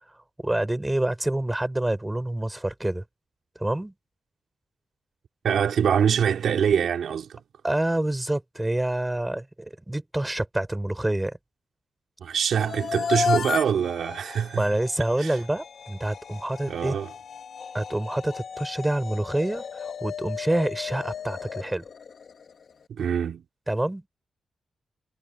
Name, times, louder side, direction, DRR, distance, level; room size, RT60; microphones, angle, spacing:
voice 1, 0.4-3.0 3.6-3.9 7.6-11.4 14.6-17.0 17.7-21.8 23.7-24.1, right 1 dB, 15° right, 7.2 m, -27 dB
voice 2, 5.4-7.4 12.2-14.7 15.2-15.4 16.7-17.1 22.9-23.4, right 8 dB, 85° right, 3.6 m, -24 dB
sound 1, 12.5-22.7, left 6 dB, 65° left, 2.4 m, -34 dB
cardioid pair, 70°, 0 cm